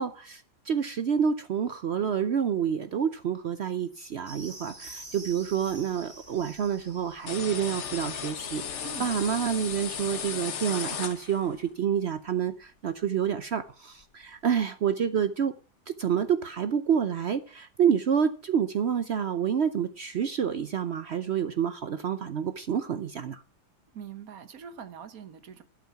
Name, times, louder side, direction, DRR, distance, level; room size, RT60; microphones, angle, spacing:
voice 1, 0.0-15.5 16.0-23.4, right 8 dB, 75° right, 0.6 m, -28 dB
sound 1, 4.3-10.2, right 2 dB, 30° right, 3.3 m, -48 dB
sound 2, 7.3-11.6, left 7 dB, 50° left, 1.0 m, -35 dB
voice 2, 23.9-25.6, right 7 dB, 55° right, 1.4 m, -43 dB
12.0 x 8.7 x 5.8 m
omnidirectional pair, 2.0 m